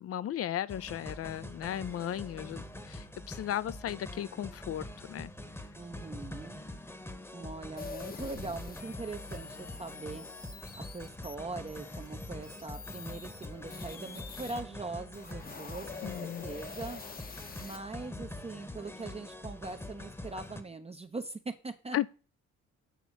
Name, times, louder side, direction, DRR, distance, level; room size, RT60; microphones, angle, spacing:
voice 1, 0.0-5.3 16.0-16.5 21.9-22.1, left 11 dB, 50° left, 0.5 m, -36 dB
sound 1, 0.7-20.6, left 1 dB, 10° left, 1.0 m, -44 dB
voice 2, 5.8-6.6 7.3-10.3 10.8-17.0 17.3-22.1, right 3 dB, 20° right, 0.6 m, -42 dB
sound 2, 7.8-14.6 15.0-17.8, left 6 dB, 30° left, 0.8 m, -46 dB
7.9 x 3.9 x 6.3 m
cardioid pair, 90°, 30 cm